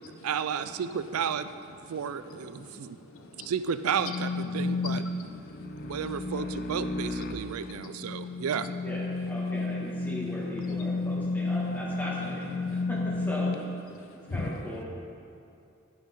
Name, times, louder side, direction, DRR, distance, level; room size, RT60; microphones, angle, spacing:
voice 1, 0.2-1.5 1.9-3.0 3.4-5.0 5.8-8.7, right 7 dB, 90° right, 12 dB, 0.4 m, -32 dB
voice 2, 1.8-3.5 4.5-6.3 7.3-8.4 9.4-9.5 9.8-10.0 10.6-11.5 12.6-12.9 13.9-14.5, left 3 dB, 75° left, 4 dB, 0.9 m, -44 dB
sound 1, 3.9-13.6, left 3 dB, 45° left, 0.6 m, -32 dB
voice 3, 8.8-13.5 14.3-14.8, equal, 10° left, -6 dB, 2.0 m, -38 dB
11.5 x 9.9 x 3.8 m, 2.6 s
head